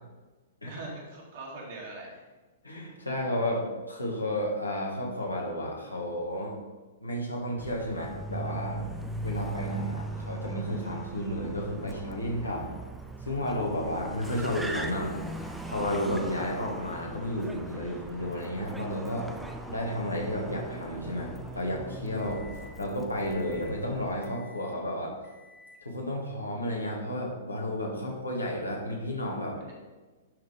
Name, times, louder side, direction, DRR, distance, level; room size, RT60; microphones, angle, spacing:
voice 1, 0.6-2.2 29.6-29.7, right 2 dB, 50° right, -3 dB, 2.3 m, -43 dB
voice 2, 2.6-6.5 7.0-8.8 9.2-12.7 13.2-15.1 15.6-19.3 19.7-22.4 22.8-25.1 25.8-29.6, left 1 dB, 85° left, -2 dB, 1.7 m, -32 dB
Car, 7.6-24.3, right 2 dB, 5° right, 0.5 m, -40 dB
Microwave oven, 20.3-22.9 23.2-23.8 24.2-24.8 25.2-25.9, left 2 dB, 25° left, 1.2 m, -55 dB
sound 1, 22.2-23.0 23.5-24.4, left 1 dB, 65° left, 1.0 m, -50 dB
11.0 x 4.0 x 3.4 m, 1.2 s
figure-of-eight pair, 110°, 0 cm